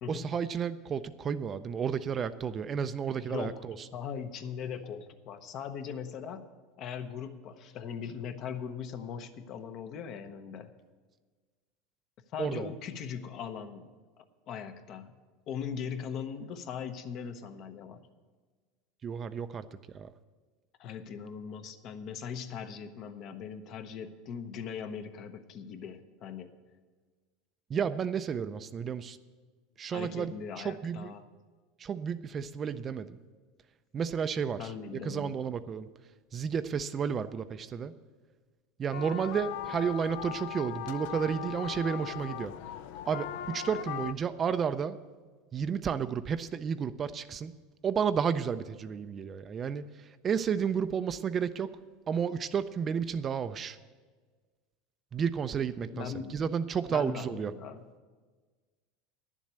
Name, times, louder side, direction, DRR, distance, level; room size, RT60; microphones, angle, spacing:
voice 1, 0.1-3.8 12.4-12.7 19.0-20.1 27.7-29.2 29.8-31.1 31.8-33.2 33.9-34.7 35.1-35.9 36.3-37.9 38.8-42.5 43.1-45.0 45.5-47.5 47.8-51.7 52.1-53.8 55.1-57.5, right 7 dB, 25° right, 12 dB, 0.4 m, -32 dB
voice 2, 3.2-3.6 3.9-6.5 6.8-10.7 12.3-15.2 15.5-18.0 20.8-26.5 29.9-31.3 34.6-35.4 55.9-56.4 56.9-57.9, left 7 dB, 45° left, 9 dB, 0.8 m, -40 dB
sound 1, 38.9-44.1, left 11 dB, 70° left, 0.4 m, -39 dB
11.0 x 7.3 x 8.1 m, 1.4 s
supercardioid pair, 140°, 0 cm